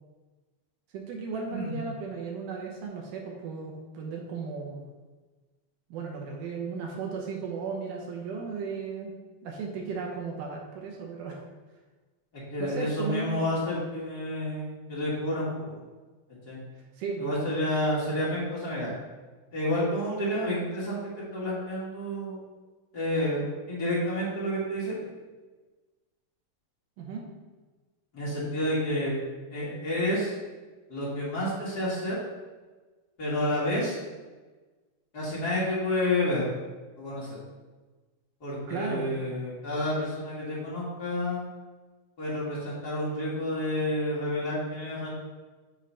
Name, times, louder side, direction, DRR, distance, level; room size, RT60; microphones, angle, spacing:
voice 1, 0.9-4.8 5.9-9.1 9.4-11.4 12.6-13.5 17.0-17.3 27.0-27.3 38.7-39.1, right 5 dB, 70° right, 0 dB, 2.3 m, -35 dB
voice 2, 12.5-15.7 16.4-16.6 17.2-18.9 19.5-22.4 22.9-25.0 28.1-29.1 29.5-30.3 30.9-32.2 33.2-34.0 35.1-36.4 37.0-37.4 38.4-41.5 42.2-45.1, left 1 dB, 35° left, -7 dB, 1.7 m, -29 dB
7.7 x 3.9 x 5.5 m, 1.3 s
omnidirectional pair, 4.5 m